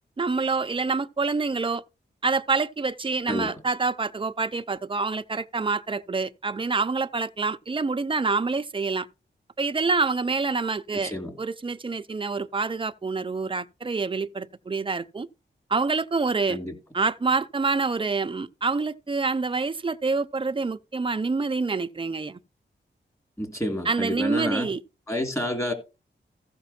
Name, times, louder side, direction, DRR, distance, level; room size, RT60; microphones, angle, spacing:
voice 1, 0.2-1.8 2.2-9.1 9.6-11.1 11.4-15.3 15.7-16.6 16.9-22.4 23.8-24.8, right 4 dB, 25° right, 0.6 m, -27 dB
voice 2, 10.9-11.3 16.5-16.7 23.4-24.7 25.1-25.7, equal, 15° left, 3.1 m, -29 dB
14.5 x 5.9 x 4.3 m
wide cardioid pair, 135°, 19 cm